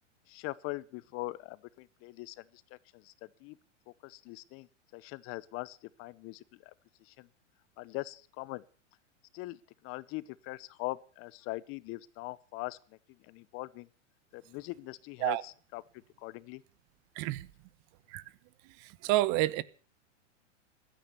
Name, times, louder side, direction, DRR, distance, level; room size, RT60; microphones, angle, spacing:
voice 1, 0.3-3.6 3.9-6.7 7.0-7.3 7.8-8.6 9.3-13.9 14.3-16.6, left 21 dB, 35° left, 0.8 m, -42 dB
voice 2, 17.1-17.5 18.1-18.2 18.6-19.6, right 16 dB, 45° right, 1.2 m, -29 dB
16.0 x 13.0 x 6.8 m
hypercardioid pair, 115°, 36 cm